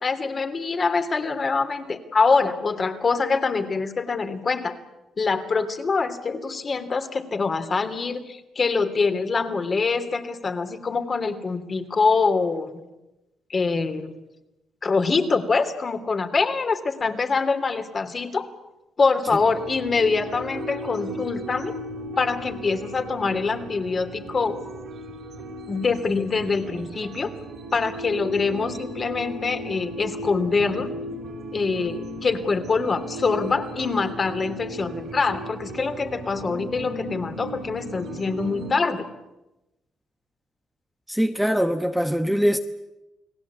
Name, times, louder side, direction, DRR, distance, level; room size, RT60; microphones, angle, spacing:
voice 1, 0.0-4.7 5.2-12.7 13.5-14.1 14.8-18.5 19.0-21.7 22.2-24.6 25.7-27.3 27.7-30.9 31.5-39.0, left 4 dB, 35° left, 3.1 m, -24 dB
sound 1, 19.3-38.7, right 1 dB, 65° right, 4.8 m, -36 dB
voice 2, 41.1-42.6, equal, ahead, 1.2 m, -22 dB
30.0 x 19.0 x 8.5 m
cardioid pair, 90°, 0 cm